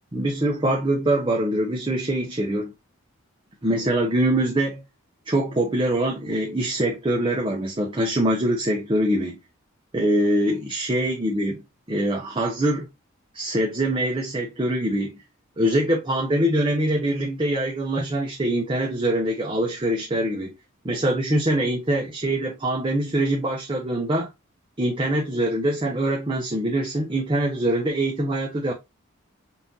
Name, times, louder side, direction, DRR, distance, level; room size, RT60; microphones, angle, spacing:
voice 1, 0.1-2.7 3.6-4.8 5.3-9.4 9.9-11.6 11.9-12.9 13.3-15.2 15.6-20.5 20.8-24.3 24.8-28.7, right 1 dB, 25° right, 0.6 m, -23 dB
5.4 x 2.5 x 2.6 m
head